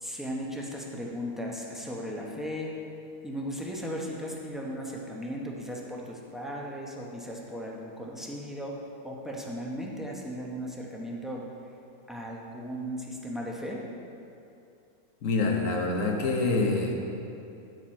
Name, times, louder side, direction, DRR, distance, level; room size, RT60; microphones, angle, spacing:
voice 1, 0.0-2.7 3.2-8.8 9.0-11.5 12.1-13.8, equal, ahead, -3 dB, 0.4 m, -36 dB
voice 2, 15.2-16.9, left 3 dB, 60° left, 1 dB, 1.3 m, -26 dB
8.9 x 6.7 x 4.4 m, 2.7 s
omnidirectional pair, 1.6 m